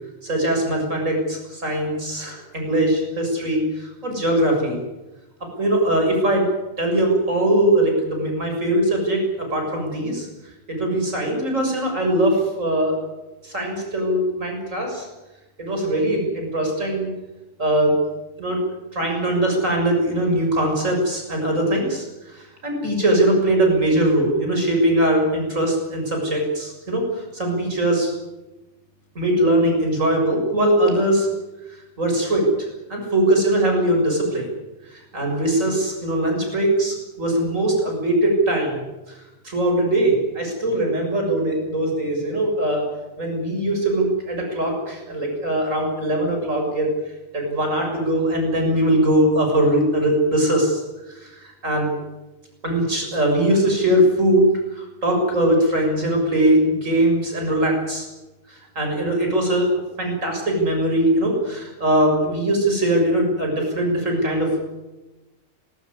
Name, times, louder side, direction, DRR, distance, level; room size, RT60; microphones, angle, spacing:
voice 1, 0.2-4.8 5.6-6.5 6.8-10.3 10.7-13.0 13.4-15.1 15.6-17.1 17.6-18.0 18.4-18.6 18.9-28.1 29.2-31.3 31.7-32.4 32.9-34.5 34.8-42.9 43.2-47.0 47.3-50.8 51.1-51.9 52.6-54.5 54.8-58.0 58.5-59.7 60.0-64.6, right 1 dB, 75° right, 1 dB, 7.2 m, -21 dB
20.0 x 19.5 x 9.6 m, 1.1 s
omnidirectional pair, 1.4 m